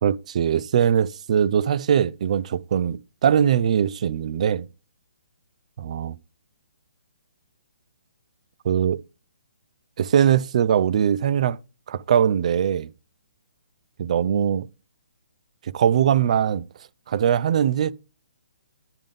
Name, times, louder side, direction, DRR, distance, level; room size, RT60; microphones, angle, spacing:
voice 1, 0.0-4.7 5.8-6.2 8.6-9.0 10.0-11.6 11.9-12.9 14.0-14.7 15.7-16.7 17.1-17.9, right 8 dB, 50° right, 0.4 m, -21 dB
10.5 x 3.7 x 5.2 m
hypercardioid pair, 155°, 5 cm